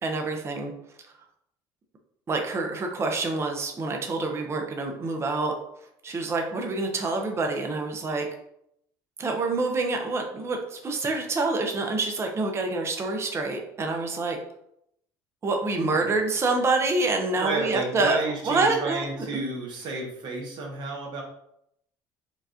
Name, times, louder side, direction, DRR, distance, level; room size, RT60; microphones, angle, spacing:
voice 1, 0.0-0.7 2.3-5.5 6.0-8.3 9.2-14.4 15.4-19.5, right 3 dB, 30° right, 3 dB, 0.7 m, -27 dB
voice 2, 17.4-21.2, right 3 dB, 55° right, 0 dB, 1.2 m, -32 dB
4.5 x 2.4 x 2.8 m, 0.75 s
supercardioid pair, 95°, 9 cm